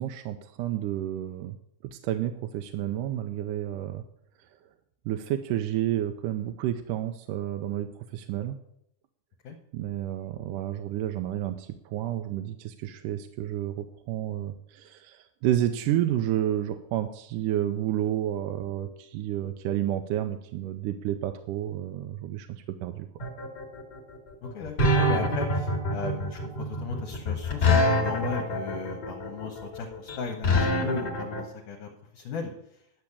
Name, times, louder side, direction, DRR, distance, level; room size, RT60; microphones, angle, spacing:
voice 1, 0.0-1.6 1.8-4.0 5.1-8.6 9.7-23.1, right 12 dB, 80° right, 7 dB, 2.1 m, -30 dB
sound 1, 23.2-31.4, left 1 dB, 35° left, 2.0 m, -25 dB
voice 2, 24.4-27.7 27.9-32.5, left 5 dB, 70° left, 2 dB, 2.5 m, -36 dB
10.5 x 6.4 x 8.5 m, 0.76 s
omnidirectional pair, 3.9 m